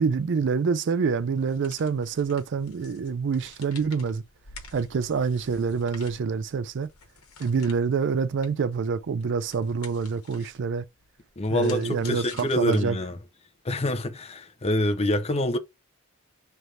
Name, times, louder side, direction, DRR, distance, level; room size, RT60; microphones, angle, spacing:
voice 1, 0.0-4.2 4.7-6.9 7.4-10.8 11.5-13.0, right 5 dB, 55° right, 0.4 m, -26 dB
sound 1, 1.4-13.2, left 5 dB, 75° left, 1.2 m, -50 dB
voice 2, 11.4-13.2 13.6-15.6, left 1 dB, 30° left, 0.6 m, -26 dB
3.4 x 2.6 x 4.3 m
head